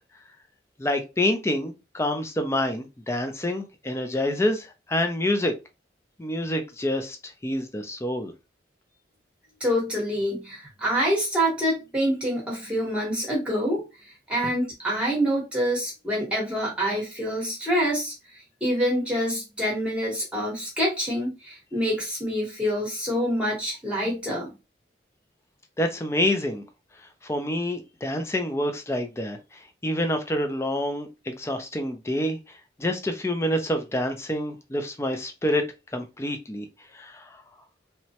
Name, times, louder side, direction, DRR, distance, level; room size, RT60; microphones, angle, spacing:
voice 1, 0.8-5.5 6.2-8.3 25.8-26.6 27.2-32.4 32.8-35.6 35.9-36.7 36.9-37.4, left 1 dB, 15° left, 0.4 m, -27 dB
voice 2, 9.6-13.8 14.3-18.1 18.6-24.5, equal, 5° right, 1.0 m, -26 dB
2.9 x 2.2 x 2.8 m
head